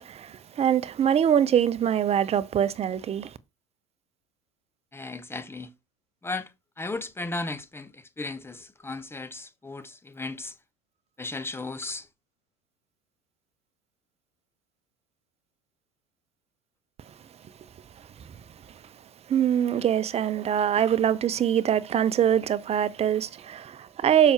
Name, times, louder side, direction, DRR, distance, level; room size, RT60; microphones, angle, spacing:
voice 1, 0.0-3.3 19.3-24.3, right 9 dB, 35° right, 0.8 m, -23 dB
voice 2, 4.9-5.7 6.2-6.5 6.8-10.5 11.2-12.1 20.7-20.8, left 3 dB, 15° left, 1.2 m, -35 dB
7.1 x 5.9 x 4.5 m
hypercardioid pair, 80°, 18 cm